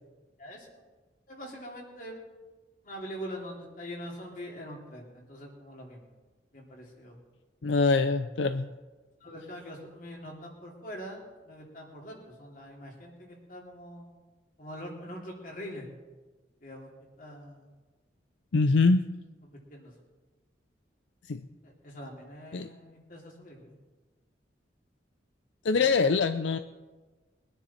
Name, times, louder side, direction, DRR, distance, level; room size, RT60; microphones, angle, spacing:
voice 1, 1.3-2.2 2.8-6.1 6.5-7.2 9.2-14.2 14.6-15.9 16.6-16.9 17.2-17.7 19.4-19.9 21.6-23.7, equal, 45° left, -1 dB, 2.9 m, -43 dB
voice 2, 7.6-8.7 18.5-19.0 21.3-21.4 22.5-22.7 25.6-26.6, left 4 dB, 80° left, 10 dB, 0.5 m, -24 dB
21.5 x 10.0 x 4.3 m, 1.3 s
head